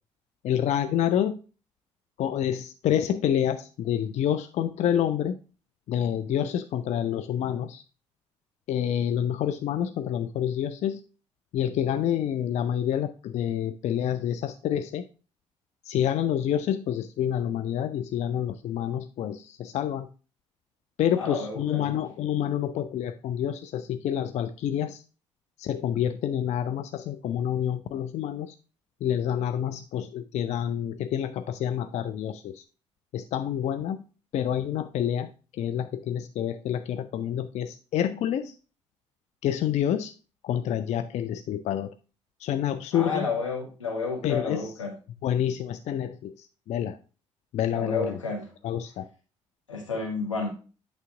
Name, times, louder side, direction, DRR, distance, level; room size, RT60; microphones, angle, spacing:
voice 1, 0.4-1.4 2.2-5.4 5.9-7.8 8.7-11.0 11.5-15.0 15.9-20.1 21.0-25.0 25.6-28.5 29.0-32.6 33.1-34.0 34.3-38.5 39.4-40.1 40.4-41.9 42.4-43.3 44.2-44.7 45.2-47.0 47.5-48.2 48.6-49.1, left 10 dB, 45° left, 11 dB, 0.4 m, -28 dB
voice 2, 21.2-21.9 42.9-44.9 47.7-48.5 49.7-50.5, left 4 dB, 85° left, -1 dB, 1.3 m, -31 dB
8.2 x 3.4 x 3.7 m, 0.35 s
figure-of-eight pair, 45°, 16 cm